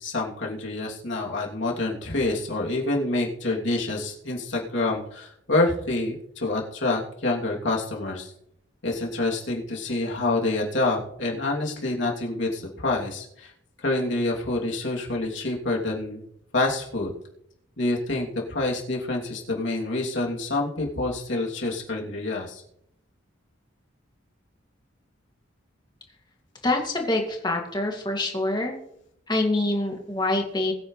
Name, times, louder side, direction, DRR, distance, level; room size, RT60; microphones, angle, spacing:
voice 1, 0.0-8.3 8.8-13.5 13.8-16.2 16.5-17.1 17.8-22.6, left 2 dB, 70° left, -2 dB, 2.9 m, -27 dB
voice 2, 26.6-28.8 29.3-30.7, left 2 dB, 20° left, 1 dB, 2.3 m, -25 dB
21.0 x 9.3 x 3.3 m, 0.75 s
head